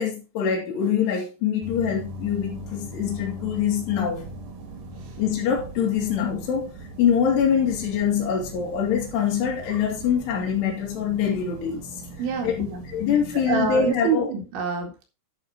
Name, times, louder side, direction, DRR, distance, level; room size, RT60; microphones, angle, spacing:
voice 1, 0.0-4.3 5.2-6.7 7.0-11.9 12.4-12.7 12.9-14.3, left 7 dB, 60° left, 4.6 m, -24 dB
sound 1, 1.6-13.9, right 1 dB, 50° right, 3.2 m, -40 dB
voice 2, 12.2-12.8 13.5-15.1, right 5 dB, 65° right, 4.2 m, -26 dB
11.0 x 6.5 x 4.3 m
omnidirectional pair, 5.9 m